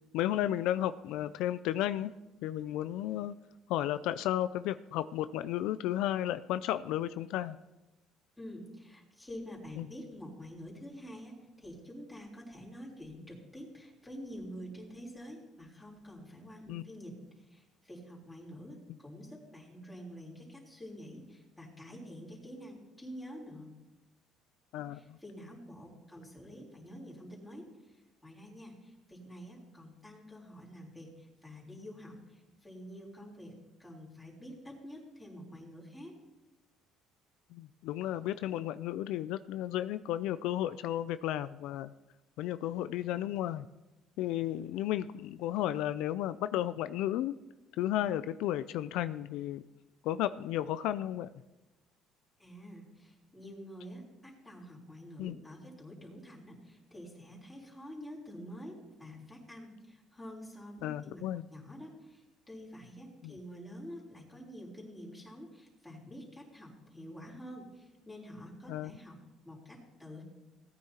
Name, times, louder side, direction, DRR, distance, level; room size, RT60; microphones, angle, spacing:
voice 1, 0.1-2.1 2.4-3.3 3.7-7.6 9.8-9.9 16.7-16.8 24.7-25.0 37.5-41.9 42.4-43.7 44.2-47.4 47.8-49.6 50.0-51.3 55.2-55.3 60.8-61.4 63.2-63.4 68.7-68.9, left 13 dB, 80° left, 13 dB, 0.3 m, -33 dB
voice 2, 8.4-23.8 24.8-33.5 33.8-36.1 52.4-61.2 61.5-69.2 69.5-70.2, equal, 10° left, -4 dB, 3.6 m, -48 dB
17.5 x 9.3 x 2.9 m, 1.0 s
cardioid pair, 120°, 0 cm